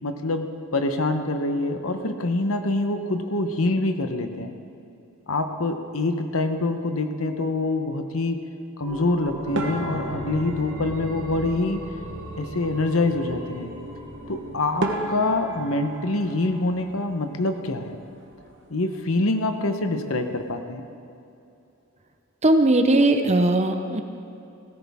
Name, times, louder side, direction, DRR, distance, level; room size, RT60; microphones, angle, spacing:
voice 1, 0.0-4.5 5.3-8.4 8.8-11.8 12.4-13.7 14.3-18.0 18.7-20.9, left 2 dB, 75° left, 7 dB, 1.0 m, -25 dB
sound 1, 8.8-18.2 18.5-18.6, right 1 dB, 85° right, 2.5 m, -38 dB
sound 2, 9.5-12.0 14.3-14.4 14.8-17.6 17.8-18.6 18.9-19.1 19.4-19.5 20.1-20.5, right 2 dB, 60° right, 1.2 m, -34 dB
voice 2, 22.4-24.0, right 1 dB, 30° right, 7 dB, 0.8 m, -19 dB
17.0 x 14.5 x 3.6 m, 2.7 s
head